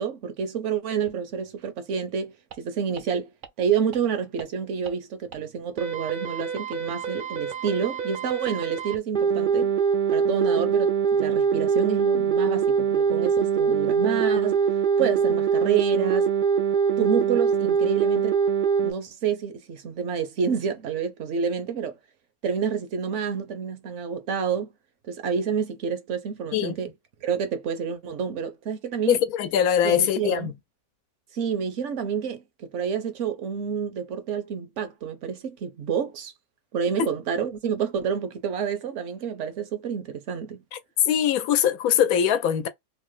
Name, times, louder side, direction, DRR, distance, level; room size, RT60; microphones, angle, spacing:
voice 1, 0.0-3.3 3.6-9.7 10.1-14.6 15.0-16.3 17.0-18.4 18.8-21.9 22.4-24.7 25.1-26.9 27.2-29.2 29.8-30.5 31.3-36.3 36.7-40.6, right 7 dB, 60° right, 0.9 m, -28 dB
sound 1, 2.5-2.6 3.0-3.1 3.4-3.5 3.9-4.0 4.4-4.5 4.9-5.0 5.3-5.4 5.8-18.9, right 6 dB, 85° right, 0.4 m, -23 dB
voice 2, 29.1-30.5 37.0-37.1 40.7-40.8 41.1-42.7, left 9 dB, 80° left, 1.0 m, -22 dB
3.1 x 2.0 x 3.1 m
omnidirectional pair, 1.5 m